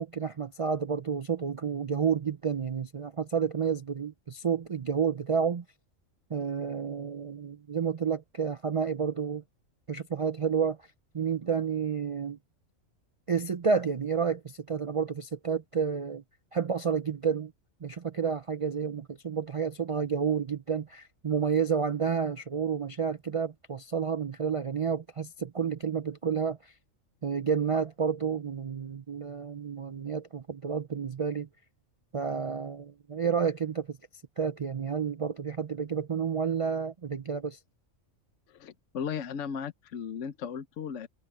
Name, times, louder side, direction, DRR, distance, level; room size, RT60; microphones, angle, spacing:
voice 1, 0.0-5.6 6.3-9.4 9.9-10.8 11.1-12.4 13.3-16.2 16.5-17.5 17.8-26.7 27.2-31.5 32.1-34.0 34.4-37.6, right 6 dB, 55° right, 0.3 m, -30 dB
voice 2, 38.5-41.1, left 7 dB, 65° left, 1.1 m, -36 dB
omnidirectional pair, 1.4 m